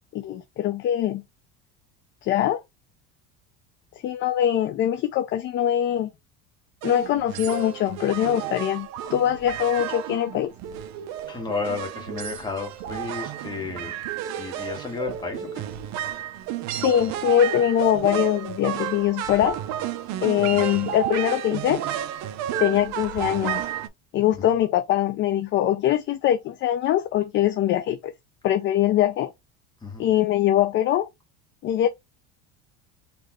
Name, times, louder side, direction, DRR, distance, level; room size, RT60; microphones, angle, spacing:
voice 1, 0.1-1.2 2.2-2.6 4.0-6.1 6.8-10.5 16.7-19.6 20.2-21.8 22.6-23.7 24.1-28.1 28.4-29.3 30.0-31.1 31.6-31.9, left 11 dB, 40° left, 0.5 m, -22 dB
sound 1, 6.8-23.9, right 11 dB, 60° right, 0.6 m, -32 dB
voice 2, 11.3-13.9 14.4-15.6 24.4-24.5 29.8-30.1, left 4 dB, 15° left, 1.7 m, -32 dB
4.2 x 3.1 x 3.1 m
cardioid pair, 135°, 31 cm